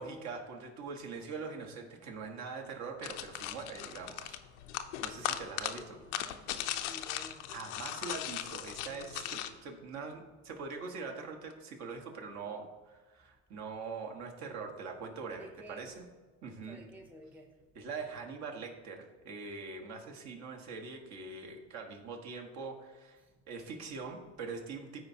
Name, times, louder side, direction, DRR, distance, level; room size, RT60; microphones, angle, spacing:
voice 1, 0.0-4.4 5.0-6.0 7.5-16.0 16.4-16.8 17.7-23.2 23.5-25.0, right 4 dB, 50° right, 2 dB, 1.5 m, -43 dB
sound 1, 3.0-9.5, left 12 dB, 90° left, 0.6 m, -38 dB
voice 2, 5.0-7.5 9.3-9.9 15.3-16.0 16.7-17.8 21.4-21.5 23.2-23.3, equal, 5° right, 2 dB, 0.6 m, -53 dB
13.5 x 4.6 x 2.8 m, 1.3 s
supercardioid pair, 120°, 34 cm